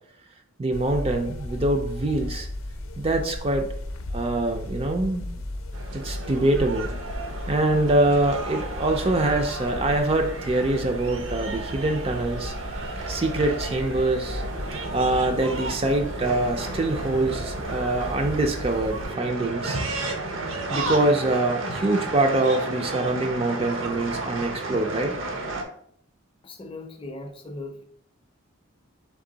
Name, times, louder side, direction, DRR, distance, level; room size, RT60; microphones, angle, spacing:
voice 1, 0.6-2.5 3.0-3.7 4.1-5.3 5.9-6.9 7.5-12.5 13.1-14.4 14.9-19.8 20.7-25.1, right 2 dB, 25° right, 4 dB, 0.4 m, -24 dB
sound 1, 0.7-19.1, left 1 dB, 75° left, 0.5 m, -35 dB
sound 2, 5.7-25.6, right 2 dB, 65° right, 0.7 m, -33 dB
voice 2, 26.4-27.8, left 2 dB, 25° left, 4 dB, 0.5 m, -38 dB
3.6 x 3.5 x 3.8 m, 0.64 s
head